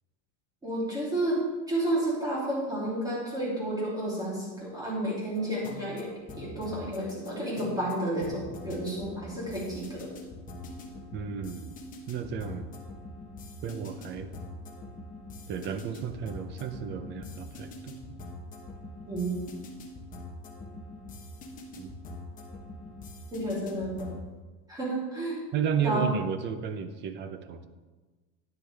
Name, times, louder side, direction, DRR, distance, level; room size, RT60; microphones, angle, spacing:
voice 1, 0.6-1.4 1.7-6.1 6.4-10.1 19.1-19.4 23.3-24.1 24.7-25.4 25.8-26.1, right 1 dB, 10° right, -6 dB, 3.2 m, -31 dB
sound 1, 5.3-24.3, left 2 dB, 25° left, 1.1 m, -44 dB
voice 2, 11.1-11.7 12.1-12.7 13.6-14.3 15.5-18.0 21.8-21.9 25.5-27.7, right 7 dB, 30° right, 10 dB, 0.6 m, -33 dB
10.0 x 9.7 x 3.5 m, 1.3 s
cardioid pair, 160°, 34 cm